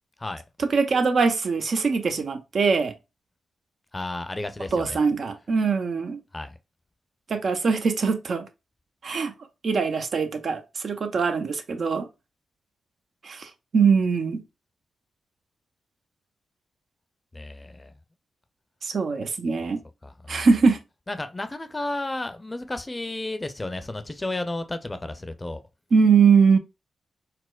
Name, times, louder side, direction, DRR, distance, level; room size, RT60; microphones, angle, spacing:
voice 1, 0.6-2.9 4.7-6.2 7.3-8.5 9.0-9.3 9.6-12.1 13.2-14.4 18.8-19.8 20.3-20.8 25.9-26.6, right 5 dB, 65° right, 0.5 m, -22 dB
voice 2, 3.9-5.0 6.3-6.6 17.3-17.9 20.0-20.5 21.1-25.6, left 2 dB, 25° left, 0.5 m, -32 dB
4.2 x 2.1 x 2.3 m
supercardioid pair, 40°, 0 cm